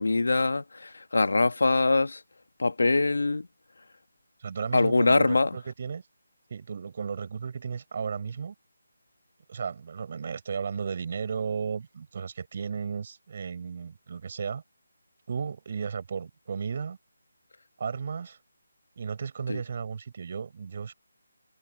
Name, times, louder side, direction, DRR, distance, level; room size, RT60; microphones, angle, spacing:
voice 1, 0.0-2.2 2.6-3.5 4.7-5.6 19.5-19.6, left 3 dB, 75° left, 1.5 m, -23 dB
voice 2, 4.4-6.0 6.5-8.5 9.5-14.6 15.3-17.0 17.8-18.4 19.0-20.9, right 6 dB, 45° right, 7.9 m, -34 dB
figure-of-eight pair, 160°, 0 cm